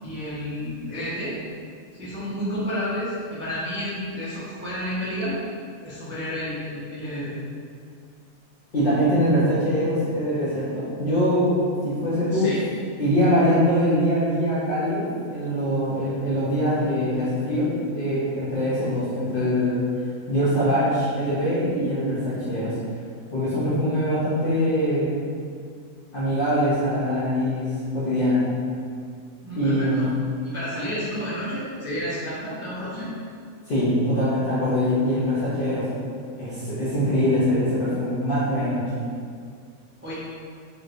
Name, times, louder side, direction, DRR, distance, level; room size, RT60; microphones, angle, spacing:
voice 1, 0.0-1.4 1.9-5.4 5.8-7.3 12.3-12.6 15.9-16.0 29.4-30.1 30.5-33.1 40.0-40.1, equal, 15° right, -11 dB, 0.4 m, -31 dB
voice 2, 8.7-12.5 13.0-19.9 20.3-22.7 23.3-25.1 26.1-28.5 29.6-30.0 33.7-35.9 36.4-38.9, equal, 50° left, -10 dB, 0.7 m, -23 dB
3.1 x 3.0 x 2.5 m, 2.2 s
omnidirectional pair, 1.5 m